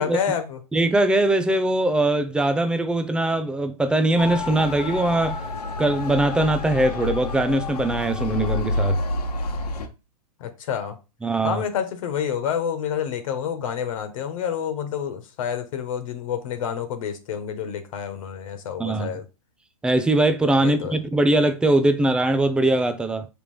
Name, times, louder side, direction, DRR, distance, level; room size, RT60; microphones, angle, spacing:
voice 1, 0.0-0.6 10.4-11.0 11.4-19.2 20.6-21.0, left 8 dB, 60° left, 1.4 m, -28 dB
voice 2, 0.7-5.4 5.8-9.0 11.2-11.6 18.8-19.1 19.8-23.3, right 2 dB, 5° right, 0.6 m, -21 dB
Motor vehicle (road) / Siren, 4.2-9.9, left 3 dB, 85° left, 1.3 m, -28 dB
5.8 x 3.4 x 4.9 m
hypercardioid pair, 130°, 20 cm